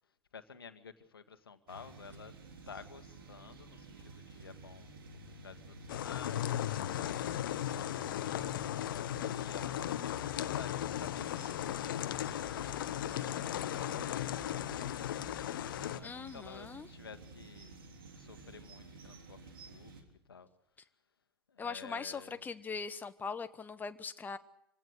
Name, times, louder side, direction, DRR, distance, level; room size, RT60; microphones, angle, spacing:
voice 1, 0.3-2.3 2.7-4.9 5.3-7.4 7.7-8.0 8.7-15.5 15.8-17.8 18.1-20.0 20.3-20.5 21.5-22.5, left 6 dB, 75° left, 1.6 m, -52 dB
sound 1, 1.7-20.0, right 3 dB, 70° right, 3.7 m, -52 dB
sound 2, 5.9-16.0, left 12 dB, 60° left, 1.0 m, -36 dB
voice 2, 16.0-16.9 21.6-24.4, left 5 dB, 15° left, 1.0 m, -41 dB
25.5 x 17.0 x 8.1 m
figure-of-eight pair, 90°, 12 cm